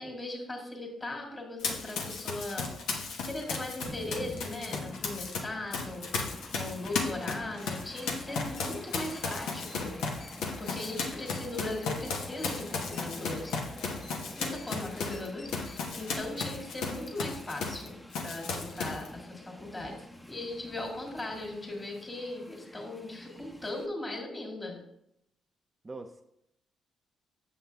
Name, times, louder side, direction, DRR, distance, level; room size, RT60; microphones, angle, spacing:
voice 1, 0.0-9.9 10.6-13.6 14.3-24.8, left 2 dB, 30° left, 0 dB, 2.3 m, -39 dB
Run, 1.6-5.4 5.7-17.9 18.1-19.1, left 4 dB, 80° left, 1.1 m, -35 dB
Train, 3.9-23.9, left 1 dB, 10° left, 0.8 m, -48 dB
sound 1, 7.5-16.2, left 3 dB, 45° left, 1.8 m, -55 dB
voice 2, 14.2-14.6 15.2-15.3 18.9-19.2 25.8-26.2, right 3 dB, 25° right, 5 dB, 0.5 m, -46 dB
7.4 x 5.5 x 3.4 m, 0.79 s
supercardioid pair, 70°, 0 cm